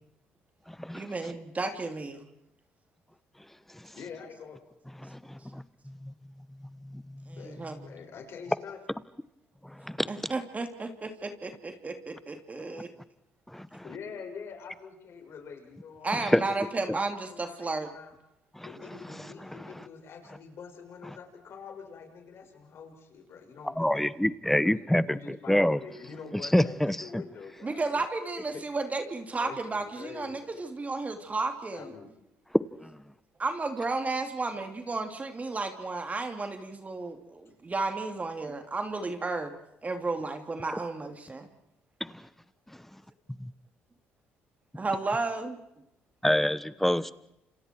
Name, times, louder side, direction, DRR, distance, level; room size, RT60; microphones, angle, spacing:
voice 1, 0.9-2.2 7.3-7.8 10.1-12.9 16.0-17.9 27.6-31.9 33.4-39.5 39.8-41.5 44.7-45.6, right 3 dB, 30° right, 6 dB, 3.1 m, -33 dB
voice 2, 3.9-4.6 7.4-8.8 13.8-18.1 18.6-24.1 24.6-27.8 28.5-28.6 29.3-30.5 31.7-32.1, left 6 dB, 60° left, 3 dB, 6.4 m, -45 dB
voice 3, 13.5-13.8 16.3-16.4 18.6-18.7 23.8-25.2 25.5-25.8 26.5-27.2 46.2-47.1, left 1 dB, 5° left, 16 dB, 1.3 m, -25 dB
29.5 x 27.5 x 4.7 m, 0.82 s
supercardioid pair, 70°, 5 cm